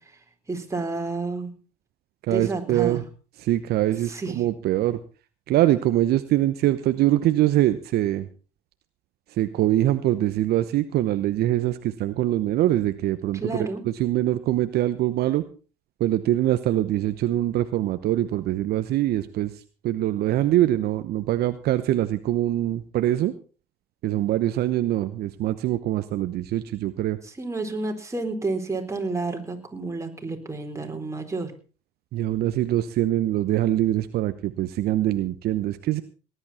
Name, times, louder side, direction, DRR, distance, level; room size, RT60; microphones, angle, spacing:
voice 1, 0.5-1.5 2.3-3.0 4.1-4.4 13.4-13.8 27.2-31.5, right 3 dB, 15° right, 3 dB, 4.3 m, -30 dB
voice 2, 2.3-3.0 3.4-5.0 5.5-8.3 9.4-15.4 16.0-19.5 19.8-23.3 24.0-27.2 32.1-36.0, right 14 dB, 60° right, 11 dB, 0.9 m, -23 dB
19.0 x 11.5 x 4.3 m, 0.36 s
hypercardioid pair, 70°, 19 cm